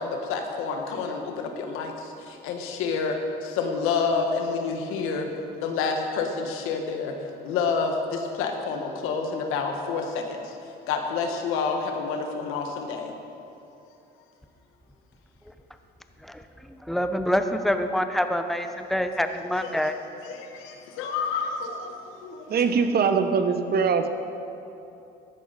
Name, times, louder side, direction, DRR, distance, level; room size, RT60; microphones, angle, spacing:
voice 1, 0.0-5.3 5.6-7.2 7.4-10.6 10.9-13.1 20.3-22.6, left 5 dB, 80° left, 4 dB, 1.5 m, -29 dB
voice 2, 16.2-20.0, equal, ahead, 7 dB, 0.9 m, -26 dB
voice 3, 22.5-24.1, right 5 dB, 50° right, 8 dB, 1.0 m, -22 dB
15.0 x 11.0 x 4.1 m, 2.8 s
supercardioid pair, 75°, 21 cm